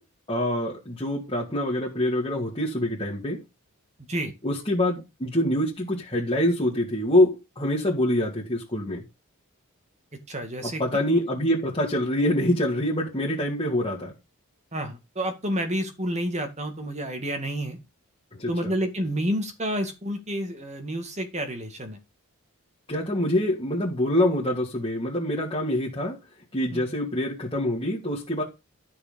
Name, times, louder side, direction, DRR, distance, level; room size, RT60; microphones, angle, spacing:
voice 1, 0.3-3.4 4.4-9.0 10.6-14.1 18.4-18.7 22.9-26.2 26.5-28.4, left 1 dB, 25° left, 2.3 m, -25 dB
voice 2, 10.3-11.0 14.7-17.8 18.5-22.0 26.7-26.9, equal, 30° right, 2.1 m, -29 dB
13.0 x 5.7 x 5.3 m
head